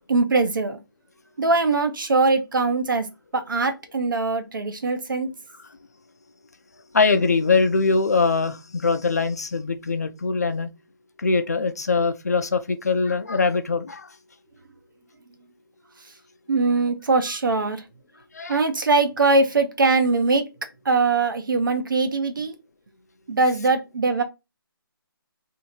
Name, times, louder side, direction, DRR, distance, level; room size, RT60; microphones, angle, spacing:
voice 1, 0.1-0.8 1.4-3.1 3.3-5.3 16.5-17.8 18.5-20.5 20.8-22.5 23.3-24.2, right 3 dB, 60° right, 0.9 m, -21 dB
voice 2, 6.9-10.7 11.2-14.1 18.3-18.6, left 4 dB, 45° left, 0.4 m, -22 dB
2.7 x 2.7 x 4.3 m
hypercardioid pair, 175°, 12 cm